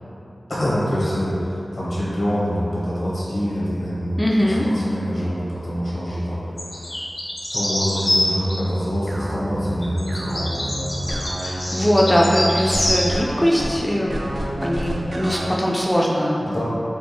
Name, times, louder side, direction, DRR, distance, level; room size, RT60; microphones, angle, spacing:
voice 1, 0.5-6.4 6.8-7.0 7.5-11.2 11.4-11.6 16.4-16.6, equal, 75° left, -8 dB, 1.2 m, -25 dB
voice 2, 4.2-4.7 11.4-14.2 14.6-16.6, equal, 5° left, -4 dB, 0.4 m, -20 dB
sound 1, 6.6-8.6 9.8-13.1 13.5-13.6, left 1 dB, 55° left, 0.7 m, -25 dB
sound 2, 8.3-15.5, right 1 dB, 65° right, 0.4 m, -29 dB
3.5 x 2.4 x 4.2 m, 2.9 s
wide cardioid pair, 60°, 0 cm